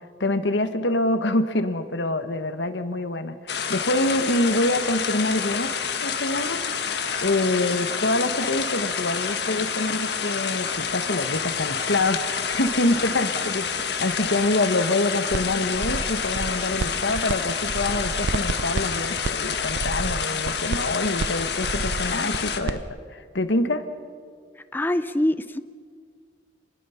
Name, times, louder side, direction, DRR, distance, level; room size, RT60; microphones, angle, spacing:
voice 1, 0.2-5.7 6.0-6.6 6.9-22.8 23.1-23.8, left 2 dB, 85° left, 10 dB, 1.4 m, -26 dB
sound 1, 3.5-22.6, left 6 dB, 65° left, 1.7 m, -28 dB
sound 2, 3.7-22.5, equal, 25° right, 6.8 m, -50 dB
sound 3, 15.3-15.4 15.7-17.3 17.6-22.8, right 3 dB, 70° right, 0.5 m, -30 dB
voice 2, 24.7-25.6, left 1 dB, 10° left, 11 dB, 0.5 m, -24 dB
29.5 x 21.0 x 5.8 m, 2.1 s
head